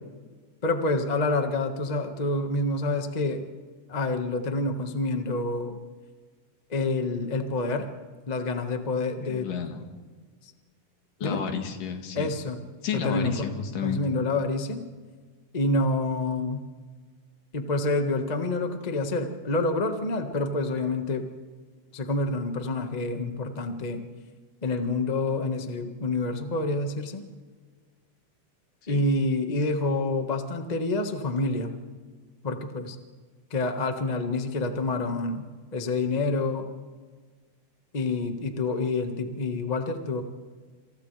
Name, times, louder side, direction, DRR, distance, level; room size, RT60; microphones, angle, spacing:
voice 1, 0.6-3.5 3.9-5.8 6.7-7.9 8.3-9.5 11.2-11.4 12.1-12.6 12.9-13.5 13.8-14.8 15.5-16.6 17.5-21.3 21.9-24.0 24.6-27.2 28.9-31.7 32.4-33.0 33.5-35.4 35.7-36.7 37.9-40.2, left 2 dB, 50° left, 5 dB, 0.5 m, -27 dB
voice 2, 9.2-9.8 11.2-12.3 12.8-14.0 28.9-29.0, left 7 dB, 80° left, 5 dB, 3.4 m, -31 dB
28.0 x 28.0 x 3.4 m, 1.5 s
omnidirectional pair, 3.7 m